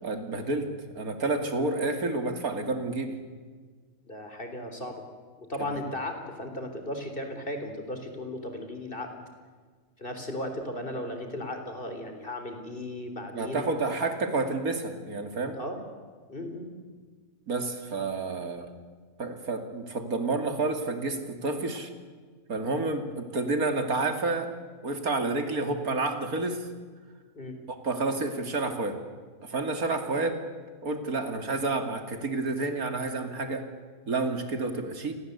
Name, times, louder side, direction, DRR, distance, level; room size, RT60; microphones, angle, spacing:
voice 1, 0.0-3.1 5.6-5.8 13.3-15.6 17.5-18.7 19.2-21.9 22.5-24.5 24.8-26.7 27.7-29.0 29.4-30.4 30.8-33.7 34.1-35.1, right 3 dB, 80° right, 7 dB, 3.1 m, -29 dB
voice 2, 4.1-5.0 5.4-9.1 10.0-13.7 15.5-15.8 16.3-16.7 27.3-27.5, left 1 dB, 35° left, 6 dB, 4.1 m, -36 dB
29.0 x 23.0 x 8.3 m, 1.5 s
omnidirectional pair, 1.5 m